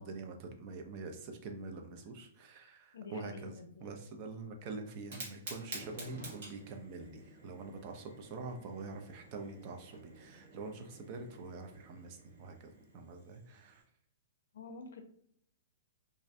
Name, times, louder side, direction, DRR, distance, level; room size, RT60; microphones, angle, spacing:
voice 1, 0.0-3.5 3.8-13.8, right 3 dB, 35° right, 4 dB, 0.3 m, -45 dB
voice 2, 2.9-3.9 14.5-15.0, left 4 dB, 80° left, 7 dB, 0.4 m, -49 dB
Fire, 4.9-13.8, right 2 dB, 55° right, 0.9 m, -51 dB
2.4 x 2.1 x 2.6 m, 0.67 s
hypercardioid pair, 160°, 0 cm